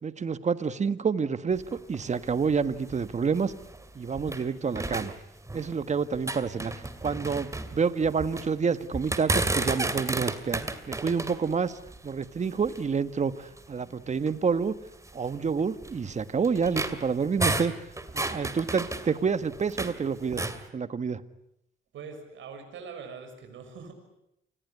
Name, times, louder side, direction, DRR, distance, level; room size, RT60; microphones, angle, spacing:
voice 1, 0.0-3.5 3.9-5.1 5.5-6.7 7.0-11.7 12.0-14.7 15.1-17.7 18.1-21.2, right 5 dB, 35° right, 12 dB, 1.6 m, -28 dB
sound 1, 1.5-4.5 4.8-5.8 6.1-8.5 8.9-12.9 13.6-13.7 14.1-14.3 15.0-20.0 20.3-20.6, right 2 dB, 15° right, 2.6 m, -32 dB
voice 2, 21.9-23.9, right 5 dB, 75° right, 6 dB, 6.6 m, -42 dB
28.0 x 20.5 x 9.7 m, 0.81 s
cardioid pair, 90°, 20 cm